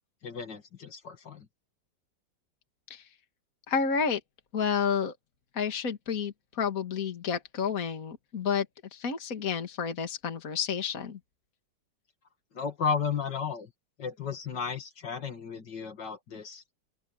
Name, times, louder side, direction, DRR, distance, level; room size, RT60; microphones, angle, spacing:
voice 1, 0.2-1.5 12.5-13.7 14.0-16.6, left 6 dB, 70° left, 2.8 m, -34 dB
voice 2, 3.7-4.2 4.5-5.2 5.5-8.7 8.9-11.2, left 6 dB, 50° left, 2.3 m, -30 dB
open air
omnidirectional pair, 2.0 m